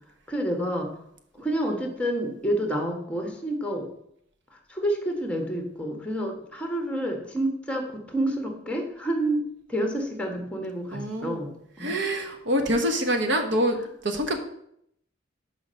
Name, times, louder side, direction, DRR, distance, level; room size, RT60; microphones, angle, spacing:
voice 1, 0.3-0.9 1.3-3.9 4.5-11.5 11.8-11.9, right 1 dB, 5° left, 3 dB, 1.3 m, -29 dB
voice 2, 10.9-11.4 11.8-13.8 14.0-14.4, equal, 65° right, 5 dB, 1.1 m, -25 dB
6.3 x 5.1 x 6.3 m, 0.72 s
head